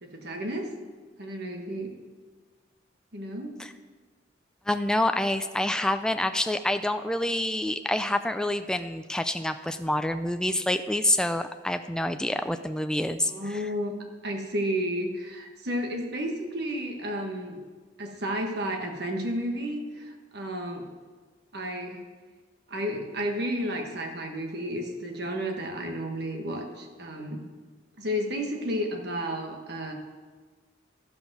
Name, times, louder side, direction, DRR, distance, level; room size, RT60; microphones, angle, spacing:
voice 1, 0.0-0.7 1.2-2.0 3.1-3.6 13.3-14.0 14.2-17.6 18.0-20.9 21.5-22.0 22.7-27.4 28.0-29.9, equal, 60° right, 3 dB, 1.3 m, -32 dB
voice 2, 4.7-13.6, left 1 dB, 5° left, 8 dB, 0.3 m, -27 dB
13.5 x 5.2 x 6.0 m, 1.4 s
head